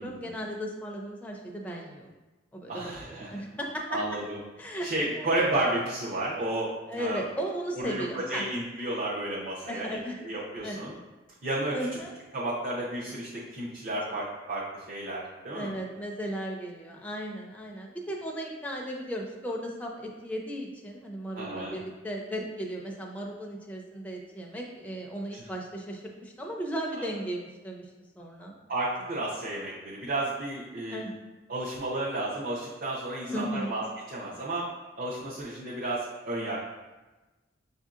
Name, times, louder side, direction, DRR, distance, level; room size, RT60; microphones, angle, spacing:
voice 1, 0.0-2.1 2.5-4.0 4.6-5.3 6.9-8.4 9.6-10.2 10.6-10.8 11.7-12.1 15.5-27.8 28.2-28.5 30.9-31.1 33.3-33.8, equal, 10° left, -1 dB, 0.4 m, -36 dB
voice 2, 2.7-3.4 3.9-4.4 4.8-7.2 7.7-10.0 10.2-10.9 11.4-11.7 12.3-15.7 21.3-21.8 25.3-25.5 26.9-27.2 28.7-31.1 31.5-34.7 35.0-36.6, right 1 dB, 50° right, -7 dB, 0.7 m, -32 dB
6.4 x 2.7 x 2.4 m, 1.2 s
head